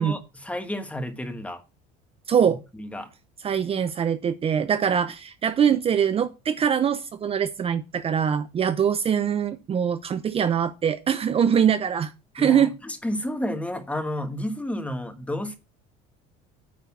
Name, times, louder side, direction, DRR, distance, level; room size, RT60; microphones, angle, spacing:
voice 1, 0.0-1.6 2.7-3.1 12.4-15.6, left 1 dB, 5° left, 1.4 m, -31 dB
voice 2, 2.3-2.6 3.4-12.7, right 8 dB, 30° right, 0.8 m, -23 dB
9.4 x 4.1 x 7.2 m
cardioid pair, 120°, 18 cm